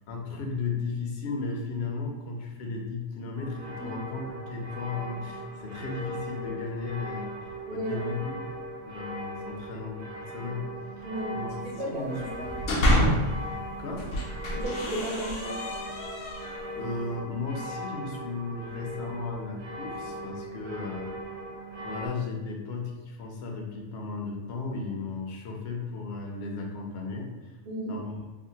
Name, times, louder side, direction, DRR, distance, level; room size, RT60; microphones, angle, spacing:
voice 1, 0.1-8.4 8.8-10.7 11.0-11.1 11.3-11.6 11.8-12.2 13.8-14.0 16.7-21.1 21.8-27.6 27.9-28.2, left 4 dB, 65° left, 1 dB, 0.7 m, -35 dB
sound 1, 3.4-22.1, equal, 80° right, 1.1 m, -39 dB
voice 2, 7.6-8.1 11.0-11.4 11.6-12.5 14.5-15.6 27.7-27.9, right 1 dB, 50° right, -7 dB, 1.1 m, -34 dB
sound 2, 12.3-13.4 13.9-16.7, equal, 90° left, 1.0 m, -27 dB
3.4 x 2.1 x 2.7 m, 1.2 s
omnidirectional pair, 1.3 m